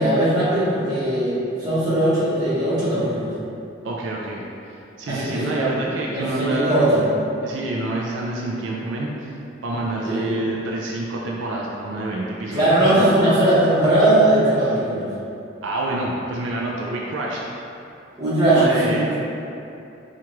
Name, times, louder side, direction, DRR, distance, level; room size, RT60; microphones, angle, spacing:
voice 1, 0.0-3.3 5.1-5.7 6.0-7.0 10.0-10.3 12.5-15.1 18.2-19.2, right 1 dB, 20° right, -12 dB, 1.1 m, -19 dB
voice 2, 3.8-6.8 7.4-9.4 9.6-13.4 14.6-14.8 15.6-17.4 18.5-19.2, right 2 dB, 75° right, -3 dB, 0.4 m, -27 dB
4.5 x 2.4 x 3.0 m, 2.7 s
head